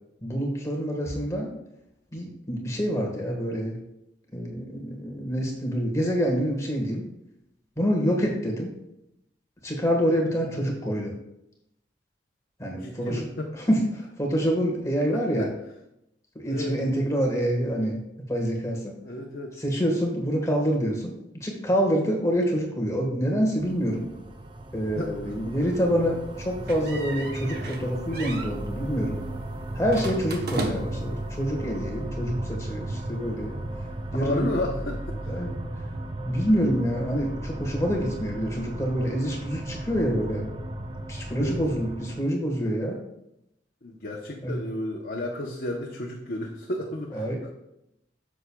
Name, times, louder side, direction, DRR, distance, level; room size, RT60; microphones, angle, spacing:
voice 1, 0.2-1.5 2.1-3.8 4.3-7.1 7.8-8.7 9.6-11.2 12.6-13.3 13.5-15.5 16.3-18.0 18.3-19.0 19.6-24.1 24.7-29.2 29.7-33.6 34.1-34.5 35.3-35.5 36.2-40.5 41.1-43.0 44.4-44.6 47.1-47.4, equal, 15° left, 0 dB, 1.4 m, -26 dB
voice 2, 12.7-13.7 15.1-15.5 16.5-16.8 19.0-19.6 24.9-25.5 30.6-30.8 34.1-35.4 41.4-41.6 43.8-47.5, left 1 dB, 55° left, -1 dB, 0.8 m, -33 dB
sound 1, 23.6-42.2, right 1 dB, 25° right, 0.5 m, -35 dB
sound 2, 26.7-27.8 28.1-28.5 29.9-31.1, right 2 dB, 55° right, 0.9 m, -35 dB
9.4 x 7.1 x 2.3 m, 0.83 s
head